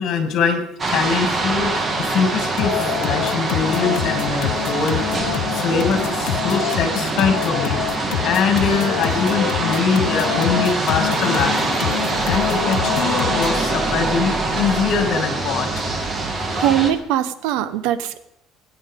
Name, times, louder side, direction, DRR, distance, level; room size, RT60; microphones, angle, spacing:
voice 1, 0.0-2.7 3.0-5.0 5.3-7.8 8.2-11.8 12.2-15.8, left 5 dB, 50° left, 4 dB, 2.6 m, -22 dB
sound 1, 0.8-16.9, right 2 dB, 25° right, 1.5 m, -24 dB
sound 2, 2.6-13.7, left 14 dB, 80° left, 0.5 m, -26 dB
voice 2, 16.4-18.2, right 11 dB, 90° right, 14 dB, 0.8 m, -21 dB
20.0 x 9.4 x 3.7 m, 0.77 s
cardioid pair, 155°, 0 cm